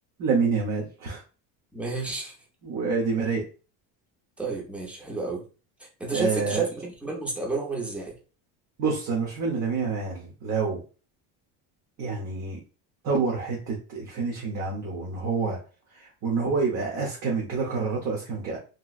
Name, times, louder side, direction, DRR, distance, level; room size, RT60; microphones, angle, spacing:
voice 1, 0.2-1.2 2.6-3.4 6.1-6.6 8.8-10.8 12.0-12.6 13.0-15.6 16.0-18.6, right 4 dB, 40° right, 0.9 m, -27 dB
voice 2, 1.7-2.3 4.4-5.4 6.0-8.1, right 3 dB, 5° right, 0.6 m, -31 dB
3.0 x 2.9 x 2.4 m
cardioid pair, 160°, 41 cm